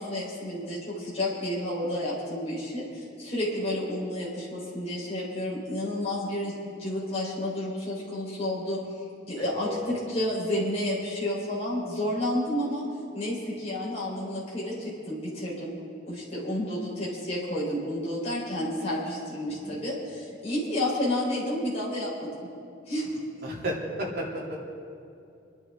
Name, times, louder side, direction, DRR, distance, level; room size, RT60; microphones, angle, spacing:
voice 1, 0.0-8.8 9.3-12.8 13.1-15.7 16.1-22.5 22.9-23.2, left 1 dB, 35° left, -6 dB, 4.3 m, -31 dB
voice 2, 9.4-9.9 19.5-19.8 23.4-24.6, equal, 55° right, -4 dB, 3.2 m, -33 dB
28.0 x 10.5 x 3.8 m, 2.6 s
head